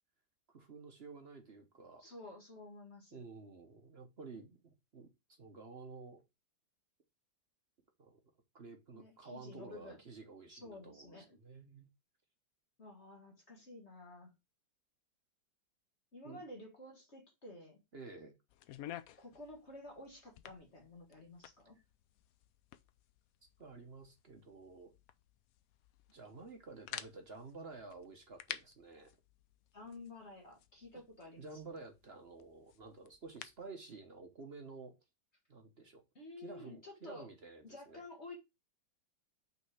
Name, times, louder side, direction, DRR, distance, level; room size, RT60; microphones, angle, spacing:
voice 1, 0.5-2.0 3.1-5.1 5.4-6.2 8.0-8.2 8.5-11.9 16.2-16.4 17.9-18.3 23.6-24.9 26.1-29.1 31.4-35.0 35.5-36.0 36.4-38.0, right 4 dB, 40° right, 1.0 m, -51 dB
voice 2, 2.0-3.2 8.9-10.0 10.5-11.4 12.8-14.3 16.1-17.8 19.2-21.8 29.7-31.6 36.1-37.3 37.6-38.4, left 2 dB, 40° left, 1.6 m, -52 dB
sound 1, 18.5-33.7, left 11 dB, 80° left, 0.8 m, -53 dB
5.5 x 4.1 x 4.8 m
omnidirectional pair, 2.0 m